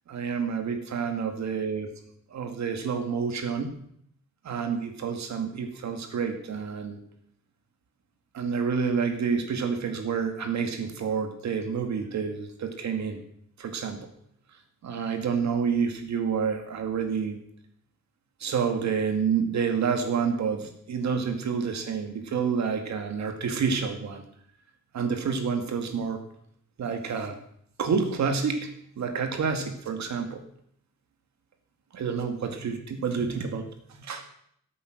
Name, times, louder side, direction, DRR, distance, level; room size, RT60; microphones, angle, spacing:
voice 1, 0.1-1.9 2.3-3.7 4.4-7.0 8.3-13.2 13.6-14.1 14.8-17.4 18.4-24.2 24.9-26.2 26.8-27.4 27.8-28.7 29.0-30.4 31.9-34.2, right 6 dB, 70° right, 5 dB, 2.3 m, -28 dB
13.5 x 8.6 x 6.6 m, 0.67 s
wide cardioid pair, 130°, 29 cm